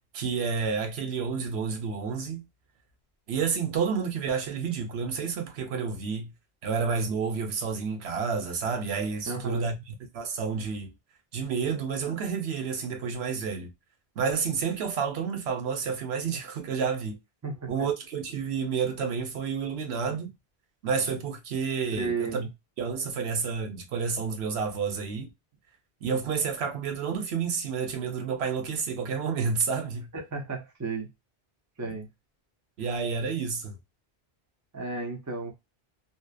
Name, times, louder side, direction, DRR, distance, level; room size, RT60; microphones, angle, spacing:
voice 1, 0.1-2.4 3.3-6.3 6.6-10.9 11.3-13.7 14.2-17.2 17.7-20.3 20.8-22.5 22.8-25.3 26.0-30.1 31.8-31.9 32.8-33.8, right 5 dB, 90° right, 1.0 m, -30 dB
voice 2, 9.3-9.7 17.4-17.7 21.9-22.5 30.1-31.1 31.8-32.1 34.7-35.5, right 4 dB, 25° right, 0.5 m, -33 dB
2.7 x 2.0 x 2.3 m
omnidirectional pair, 1.0 m